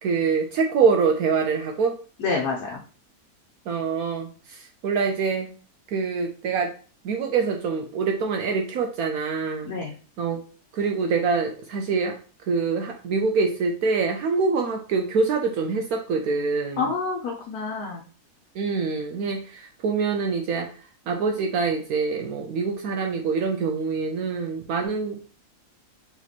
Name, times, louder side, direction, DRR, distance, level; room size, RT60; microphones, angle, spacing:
voice 1, 0.0-1.9 3.7-5.5 5.9-6.7 7.0-9.7 10.2-10.4 10.7-12.1 12.5-16.9 18.6-20.7 21.1-25.2, right 5 dB, 70° right, 3 dB, 1.1 m, -25 dB
voice 2, 2.2-2.8 9.6-9.9 16.8-18.0, left 4 dB, 70° left, -2 dB, 1.3 m, -28 dB
4.2 x 3.0 x 4.1 m, 0.38 s
omnidirectional pair, 1.7 m